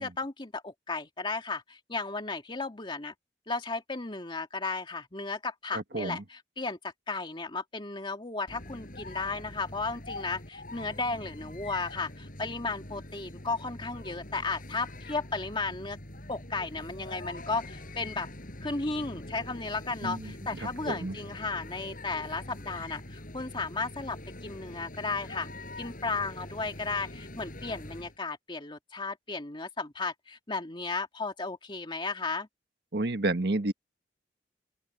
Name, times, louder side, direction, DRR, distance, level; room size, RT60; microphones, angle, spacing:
voice 1, 0.0-3.1 3.5-16.0 16.3-18.3 18.6-25.5 25.8-32.5, left 3 dB, 30° left, 2.3 m, -34 dB
voice 2, 5.7-6.2 20.0-21.2 32.9-33.7, right 2 dB, 65° right, 1.6 m, -31 dB
sound 1, 8.5-28.1, left 1 dB, 50° left, 7.1 m, -44 dB
open air
head